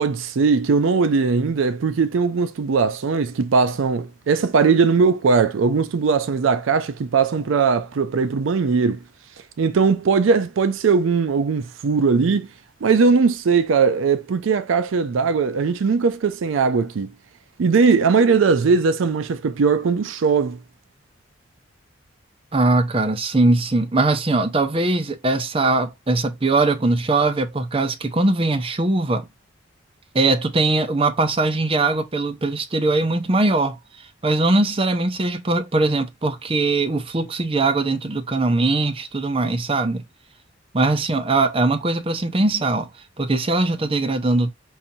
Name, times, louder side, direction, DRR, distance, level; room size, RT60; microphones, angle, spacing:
voice 1, 0.0-9.0 9.6-12.5 12.8-17.1 17.6-20.6, right 5 dB, 80° right, 0.4 m, -19 dB
voice 2, 22.5-29.3 30.1-33.8 34.2-40.0 40.7-42.9 43.2-44.5, right 2 dB, 30° right, 0.6 m, -21 dB
5.6 x 2.6 x 2.7 m
head